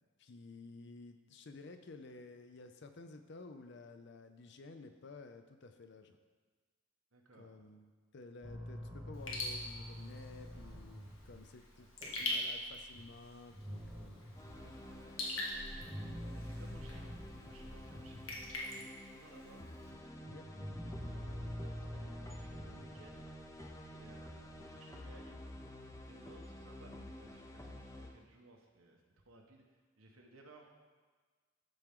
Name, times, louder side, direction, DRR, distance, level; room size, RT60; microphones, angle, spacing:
voice 1, 0.2-6.2 7.4-11.9 12.2-14.3 20.3-20.4, left 3 dB, 55° left, 8 dB, 0.6 m, -53 dB
voice 2, 7.1-7.6 11.8-12.7 14.5-19.6 20.7-23.6 24.0-25.4 26.0-30.7, right 2 dB, 90° right, 1 dB, 1.3 m, -61 dB
sound 1, 8.4-18.7 19.0-24.6, equal, 15° right, 1.1 m, -47 dB
Raindrop / Drip, 9.1-19.9, left 2 dB, 75° left, 1.5 m, -44 dB
sound 2, 14.4-28.1, left 1 dB, 15° left, 0.6 m, -51 dB
13.0 x 4.5 x 3.7 m, 1.4 s
head